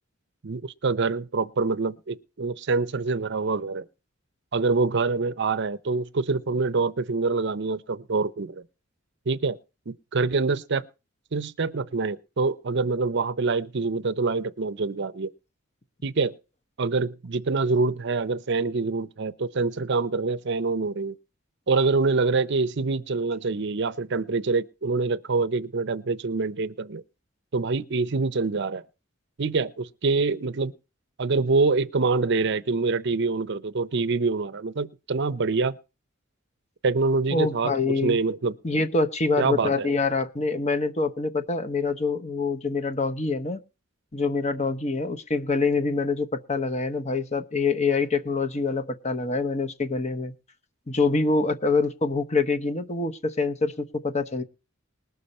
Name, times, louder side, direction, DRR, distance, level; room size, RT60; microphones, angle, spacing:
voice 1, 0.4-3.9 4.5-8.6 9.3-9.6 9.9-10.9 11.3-15.3 16.0-16.3 16.8-21.2 21.7-27.0 27.5-28.8 29.4-30.7 31.2-35.8 36.8-37.7 38.0-38.6 39.4-39.9, right 4 dB, 60° right, 0.7 m, -25 dB
voice 2, 37.3-38.2 38.6-43.6 44.1-50.3 50.9-54.4, left 3 dB, 35° left, 1.0 m, -25 dB
20.0 x 6.8 x 4.3 m
head